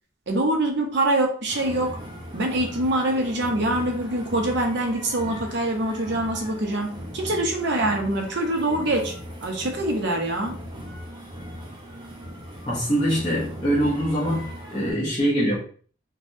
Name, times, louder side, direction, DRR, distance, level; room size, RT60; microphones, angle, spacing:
voice 1, 0.3-2.0 2.3-9.1 9.4-10.6, right 1 dB, 60° right, 2 dB, 0.6 m, -24 dB
sound 1, 1.5-14.9, equal, 25° right, 0.7 m, -38 dB
voice 2, 12.6-15.6, equal, 25° left, -9 dB, 0.8 m, -24 dB
3.4 x 2.2 x 2.6 m, 0.44 s
head